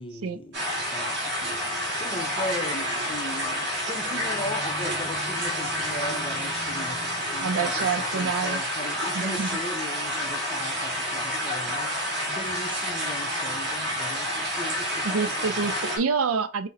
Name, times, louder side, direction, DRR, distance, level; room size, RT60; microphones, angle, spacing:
voice 1, 0.0-15.7, left 1 dB, 25° left, 0.5 m, -38 dB
sound 1, 0.5-16.0, equal, 50° right, 1.8 m, -29 dB
voice 2, 7.4-8.6 9.2-9.5 15.0-16.7, right 5 dB, 65° right, 0.5 m, -27 dB
6.0 x 2.0 x 4.1 m
head